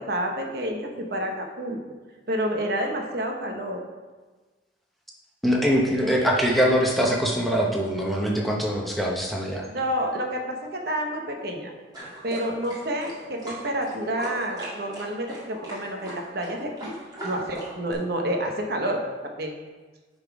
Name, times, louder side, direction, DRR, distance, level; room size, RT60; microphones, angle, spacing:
voice 1, 0.0-1.8 2.3-3.8 6.0-6.1 9.7-11.7 12.2-16.9 17.2-19.5, equal, 55° right, 2 dB, 0.9 m, -29 dB
voice 2, 5.4-9.6, equal, ahead, -2 dB, 0.8 m, -23 dB
sound 1, 11.9-17.9, right 1 dB, 20° right, 2.4 m, -39 dB
10.5 x 4.1 x 4.7 m, 1.3 s
head